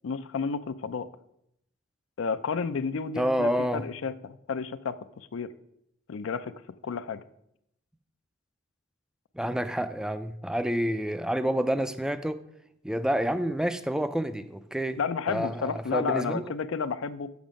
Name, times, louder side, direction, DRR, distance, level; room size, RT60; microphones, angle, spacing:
voice 1, 0.0-1.1 2.2-5.5 6.1-6.5 6.8-7.2 15.0-17.3, left 5 dB, 80° left, 13 dB, 0.4 m, -31 dB
voice 2, 3.2-3.9 9.3-12.4 12.8-15.0 15.3-16.4, equal, 5° right, 11 dB, 0.3 m, -28 dB
7.2 x 6.1 x 5.1 m, 0.77 s
head